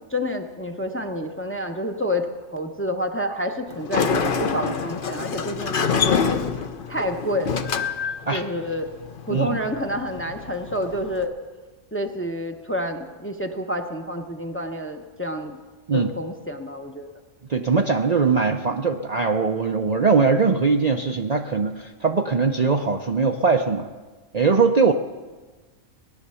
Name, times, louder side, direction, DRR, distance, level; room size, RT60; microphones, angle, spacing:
voice 1, 0.1-6.4 6.9-7.6 8.3-8.9 9.3-11.3 11.9-15.6 15.9-17.1, left 1 dB, 10° left, 4 dB, 0.7 m, -28 dB
Sliding door, 3.7-11.3, left 5 dB, 50° left, 0.9 m, -27 dB
voice 2, 17.5-23.9 24.3-24.9, right 4 dB, 45° right, 4 dB, 0.6 m, -21 dB
18.0 x 11.0 x 6.9 m, 1.3 s
omnidirectional pair, 1.3 m